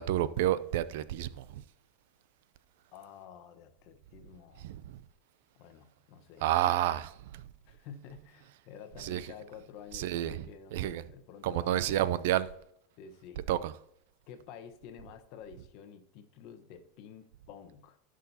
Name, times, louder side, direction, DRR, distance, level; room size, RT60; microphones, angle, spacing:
voice 1, 0.0-1.6 4.6-5.0 6.4-7.0 9.0-9.2 9.9-10.4 10.7-11.0 11.4-12.5 13.5-13.7, right 13 dB, 70° right, 0.5 m, -29 dB
voice 2, 2.9-4.7 5.5-7.0 7.6-12.2 13.0-13.4 14.3-18.0, left 8 dB, 50° left, 1.1 m, -50 dB
15.0 x 6.3 x 2.8 m
supercardioid pair, 155°, 0 cm